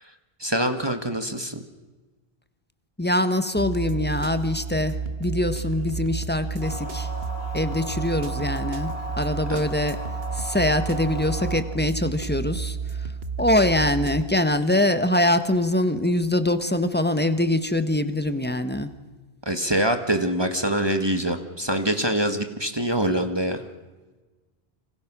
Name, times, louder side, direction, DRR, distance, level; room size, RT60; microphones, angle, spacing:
voice 1, 0.4-1.6 9.5-9.6 19.4-23.6, right 1 dB, 25° right, 7 dB, 1.7 m, -24 dB
voice 2, 3.0-7.1 7.5-10.0 10.3-13.1 13.4-18.9, left 1 dB, 10° left, 10 dB, 1.3 m, -23 dB
sound 1, 3.6-14.2, right 5 dB, 70° right, 1.7 m, -31 dB
sound 2, 6.6-11.6, equal, 90° left, 4.8 m, -36 dB
28.5 x 26.0 x 6.2 m, 1.3 s
omnidirectional pair, 1.0 m